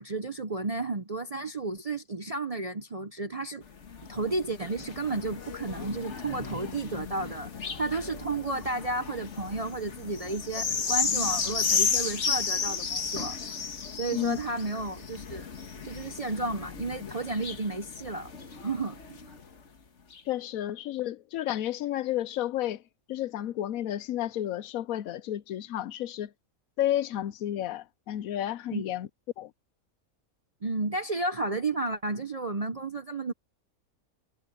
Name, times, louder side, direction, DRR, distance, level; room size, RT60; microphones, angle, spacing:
voice 1, 0.0-3.6 4.1-13.4 13.9-15.5 15.8-18.3 18.6-19.3 28.7-28.8 30.6-33.3, right 2 dB, 40° right, 0.5 m, -32 dB
sound 1, 3.7-19.5 20.1-20.2, left 5 dB, 55° left, 1.7 m, -33 dB
voice 2, 20.3-22.8 23.1-26.3 26.8-29.1 29.4-29.5, left 12 dB, 75° left, 1.0 m, -31 dB
omnidirectional pair, 1.5 m